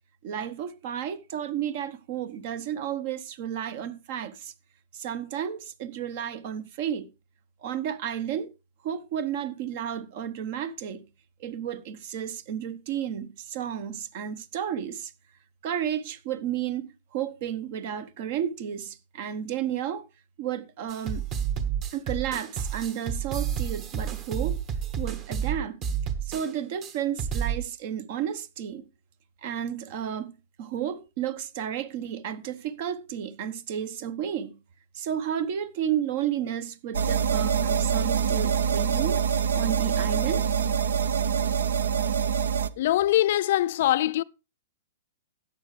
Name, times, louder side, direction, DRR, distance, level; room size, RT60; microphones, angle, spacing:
voice 1, 0.2-4.5 4.9-7.1 7.6-8.5 8.8-11.0 11.4-15.1 15.6-20.1 20.4-21.2 21.9-24.6 25.0-25.8 26.2-28.8 29.4-34.6 34.9-39.2 39.5-40.5, right 9 dB, 50° right, 1.0 m, -32 dB
sound 1, 20.9-26.5 26.8-26.9 27.2-27.6, right 8 dB, 30° right, 1.4 m, -30 dB
sound 2, 36.9-42.7, right 7 dB, 75° right, 0.6 m, -25 dB
voice 2, 42.8-44.2, left 13 dB, 60° left, 0.4 m, -23 dB
13.5 x 9.3 x 3.2 m
hypercardioid pair, 120°, 0 cm